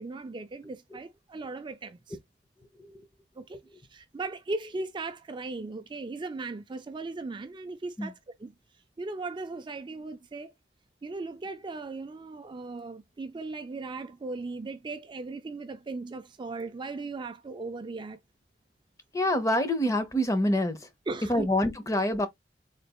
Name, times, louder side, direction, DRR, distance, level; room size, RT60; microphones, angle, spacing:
voice 1, 0.0-2.2 3.4-8.5 9.0-10.5 11.0-18.2 21.1-21.5, right 3 dB, 25° right, 0.4 m, -38 dB
voice 2, 19.1-20.8 21.3-22.3, left 1 dB, 20° left, 0.7 m, -26 dB
3.9 x 3.3 x 2.3 m
head